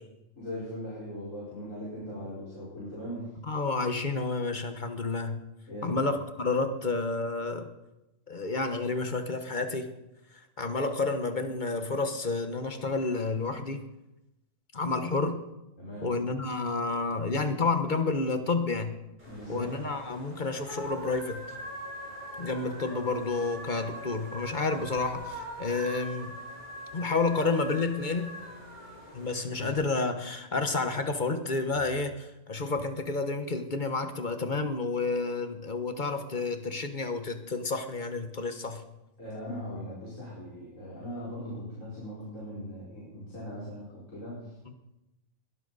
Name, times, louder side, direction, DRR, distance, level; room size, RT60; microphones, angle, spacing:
voice 1, 0.4-3.3 5.7-6.0 15.8-16.1 19.3-19.7 39.2-44.5, equal, 70° left, -7 dB, 5.2 m, -39 dB
voice 2, 3.5-5.4 5.8-7.7 8.3-9.9 10.6-13.8 14.7-15.4 16.0-18.9 19.5-21.4 22.4-26.3 26.9-28.3 29.1-38.8 44.7-44.8, left 3 dB, 40° left, 7 dB, 1.2 m, -30 dB
sound 1, 19.2-29.7, equal, 35° right, 5.6 m, -43 dB
21.5 x 12.5 x 4.1 m, 0.95 s
omnidirectional pair, 1.4 m